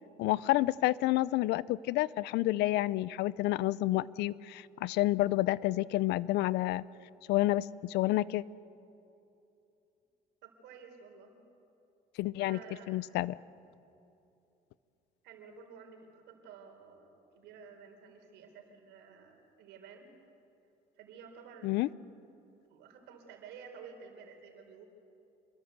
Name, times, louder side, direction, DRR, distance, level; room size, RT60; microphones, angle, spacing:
voice 1, 0.2-6.8 7.3-8.4 12.2-12.6 12.9-13.3 21.6-21.9, left 17 dB, 85° left, 20 dB, 0.6 m, -29 dB
voice 2, 10.4-11.4 12.4-13.0 15.2-20.1 21.0-21.7 22.7-24.9, right 6 dB, 85° right, 4 dB, 4.2 m, -52 dB
27.0 x 22.5 x 8.1 m, 2.8 s
cardioid pair, 110°, 17 cm